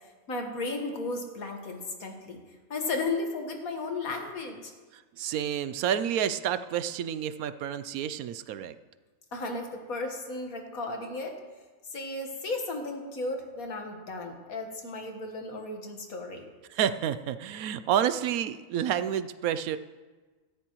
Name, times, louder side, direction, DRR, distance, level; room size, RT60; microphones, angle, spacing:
voice 1, 0.3-2.4 2.7-4.7 9.3-11.4 11.9-16.5, left 3 dB, 75° left, 3 dB, 1.9 m, -34 dB
voice 2, 4.9-8.8 16.7-19.8, right 9 dB, 80° right, 12 dB, 1.0 m, -29 dB
16.5 x 13.5 x 3.1 m, 1.3 s
omnidirectional pair, 1.5 m